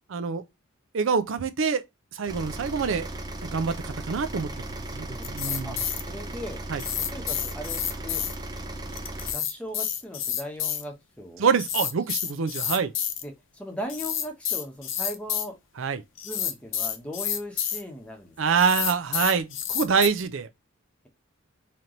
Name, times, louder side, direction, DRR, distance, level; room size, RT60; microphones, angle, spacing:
voice 1, 0.1-0.4 0.9-1.8 2.1-3.1 3.4-4.5 4.9-5.7 6.7-6.8 11.4-12.9 15.8-16.0 18.4-20.5, right 5 dB, 70° right, 0.5 m, -25 dB
sound 1, 2.3-9.3, right 1 dB, 20° right, 0.5 m, -36 dB
voice 2, 5.1-5.8 6.1-6.6 7.1-8.2 9.3-11.5 13.2-15.5 16.2-18.6, equal, 5° left, 0.9 m, -38 dB
sound 2, 5.2-6.0 6.8-8.3 8.9-10.8 11.6-13.2 13.9-15.5 16.2-17.8 18.6-20.1, left 9 dB, 65° left, 0.7 m, -29 dB
3.3 x 2.9 x 3.7 m
head